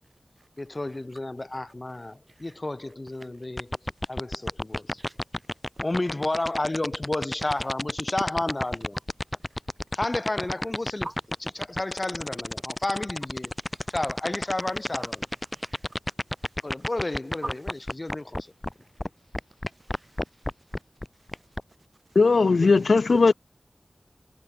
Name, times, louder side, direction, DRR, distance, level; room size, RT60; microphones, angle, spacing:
voice 1, 0.6-3.7 4.1-5.0 5.8-9.0 9.9-11.1 11.6-13.5 13.9-15.2 16.6-18.5, left 2 dB, 35° left, 2.4 m, -31 dB
sound 1, 3.6-18.7 19.0-19.1 19.3-21.6, left 1 dB, 20° left, 0.7 m, -30 dB
voice 2, 13.6-13.9 15.0-15.1 15.5-16.0 16.4-16.9 17.4-17.5 19.8-20.2 22.1-22.2 22.6-22.8 23.1-23.2, right 2 dB, 35° right, 4.7 m, -42 dB
voice 3, 22.2-23.3, left 4 dB, 85° left, 0.4 m, -18 dB
wide cardioid pair, 60°, 0 cm